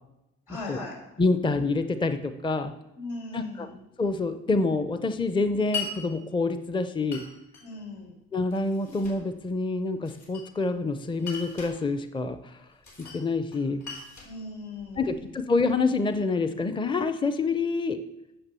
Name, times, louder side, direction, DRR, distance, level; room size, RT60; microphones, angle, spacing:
voice 1, 0.5-1.0 3.0-3.7 7.6-8.1 14.2-15.3, left 2 dB, 85° left, -2 dB, 4.4 m, -39 dB
voice 2, 1.2-2.7 3.3-3.7 4.0-7.2 8.3-12.6 13.1-13.8 15.0-18.0, left 3 dB, 15° left, 10 dB, 0.6 m, -27 dB
Glass, 5.7-5.9 7.1-7.7 8.5-9.2 10.0-10.7 11.2-11.8 12.8-13.2 13.5-15.2, left 4 dB, 65° left, 4.4 m, -38 dB
8.8 x 6.8 x 6.8 m, 0.96 s
cardioid pair, 90°, 30 cm